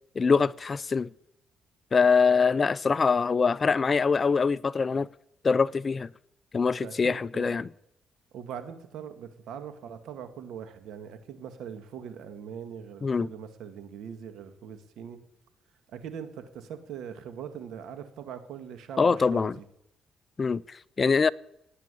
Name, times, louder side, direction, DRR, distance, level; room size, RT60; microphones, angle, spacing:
voice 1, 0.2-1.1 1.9-5.1 5.4-6.1 6.5-7.7 13.0-13.3 19.0-19.6 20.4-21.3, left 5 dB, 35° left, 0.5 m, -24 dB
voice 2, 6.8-7.6 8.3-15.2 15.9-19.6, right 8 dB, 80° right, 2.1 m, -41 dB
17.0 x 9.9 x 8.4 m
cardioid pair, 90°, 0 cm